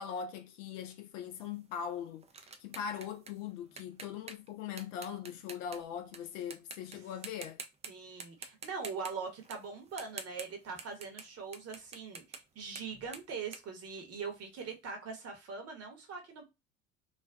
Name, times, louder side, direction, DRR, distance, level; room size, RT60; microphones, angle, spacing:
voice 1, 0.0-2.3 2.6-7.6, left 8 dB, 70° left, 0.5 m, -41 dB
sound 1, 1.3-6.2 6.5-7.0 7.2-7.9 8.2-14.5, right 5 dB, 20° right, 0.3 m, -48 dB
voice 2, 7.9-16.4, right 5 dB, 40° right, 0.9 m, -42 dB
2.5 x 2.2 x 2.2 m
hypercardioid pair, 70°, 39 cm